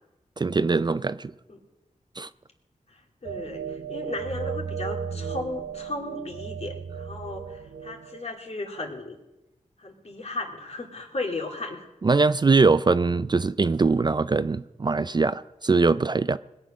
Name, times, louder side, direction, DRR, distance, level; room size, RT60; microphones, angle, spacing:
voice 1, 0.4-1.3 2.2-2.3 12.0-16.4, right 4 dB, 35° right, 0.4 m, -22 dB
voice 2, 2.9-9.2 9.8-11.9, left 2 dB, 50° left, 2.7 m, -35 dB
sound 1, 3.3-8.3, right 6 dB, 65° right, 0.7 m, -35 dB
20.5 x 7.7 x 6.2 m
cardioid pair, 60°, 14 cm